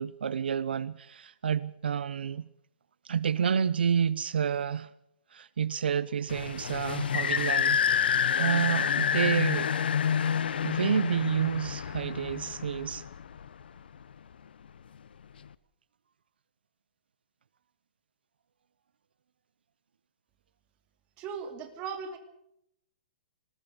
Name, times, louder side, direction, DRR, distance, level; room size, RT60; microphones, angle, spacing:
voice 1, 0.0-2.5 3.0-4.9 5.3-7.8 8.4-9.7 10.6-13.0, right 7 dB, 85° right, 0.8 m, -29 dB
sound 1, 6.3-13.6, left 8 dB, 75° left, 0.9 m, -28 dB
voice 2, 21.2-22.2, right 6 dB, 25° right, 2.7 m, -37 dB
26.0 x 19.5 x 5.3 m
hypercardioid pair, 165°, 5 cm